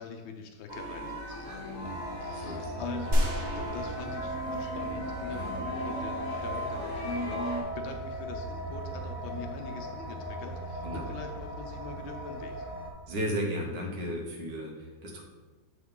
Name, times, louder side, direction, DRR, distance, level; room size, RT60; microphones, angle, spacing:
voice 1, 0.0-3.2 3.6-12.7, left 5 dB, 80° left, 4 dB, 1.5 m, -43 dB
sound 1, 0.7-7.6, equal, 15° right, 1.7 m, -37 dB
sound 2, 1.8-12.9, right 1 dB, 60° left, 0.9 m, -38 dB
voice 2, 2.3-2.7 5.3-5.5 10.8-11.1 13.1-15.2, equal, 65° right, 0 dB, 1.6 m, -34 dB
sound 3, 3.1-4.9 5.4-5.5, equal, 85° right, 0.5 m, -30 dB
7.1 x 3.8 x 3.7 m, 1.3 s
omnidirectional pair, 2.1 m